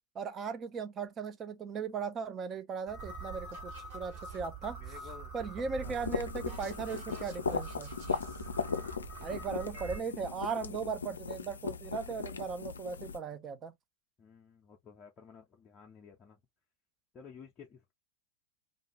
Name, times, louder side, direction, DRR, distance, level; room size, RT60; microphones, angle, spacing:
voice 1, 0.1-4.8 5.3-7.9 9.2-13.8, right 5 dB, 25° right, 0.5 m, -38 dB
sound 1, 2.9-10.0, right 4 dB, 50° right, 1.4 m, -44 dB
voice 2, 4.8-5.3 5.8-6.0 8.7-9.1 9.7-9.9 14.2-16.4 17.1-17.9, left 6 dB, 25° left, 0.6 m, -53 dB
sound 2, 5.8-13.2, left 5 dB, 70° left, 0.3 m, -38 dB
2.5 x 2.3 x 2.9 m
figure-of-eight pair, 90°, 0 cm